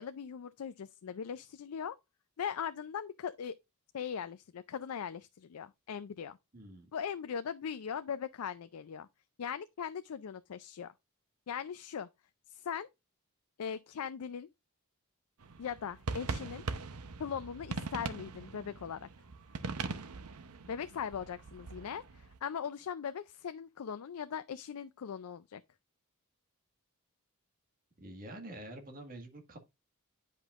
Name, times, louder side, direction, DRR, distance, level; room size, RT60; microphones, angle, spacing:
voice 1, 0.0-2.0 2.4-3.6 3.9-6.4 6.9-9.1 9.4-10.9 11.5-12.1 12.5-12.9 13.6-14.5 15.6-16.6 17.2-19.1 20.7-25.6, left 7 dB, 80° left, 0.4 m, -40 dB
voice 2, 6.5-6.9 28.0-29.6, right 1 dB, 40° right, 1.7 m, -47 dB
sound 1, 15.4-22.4, right 4 dB, 80° right, 0.8 m, -41 dB
10.0 x 5.3 x 2.4 m
head